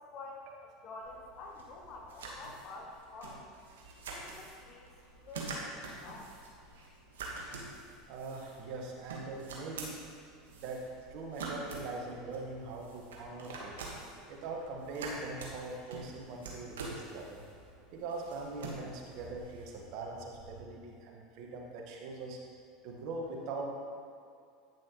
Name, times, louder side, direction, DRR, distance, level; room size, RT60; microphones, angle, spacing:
voice 1, 0.0-3.4 4.1-4.9 5.2-6.3, left 3 dB, 50° left, 0 dB, 0.9 m, -48 dB
sound 1, 1.0-20.6, right 3 dB, 80° right, 1.2 m, -46 dB
voice 2, 8.1-10.0 10.5-10.8 11.1-13.8 14.3-17.4 17.9-22.4 22.8-23.7, right 3 dB, 60° right, 0 dB, 1.2 m, -42 dB
9.1 x 6.1 x 3.0 m, 2.4 s
hypercardioid pair, 85°, 0 cm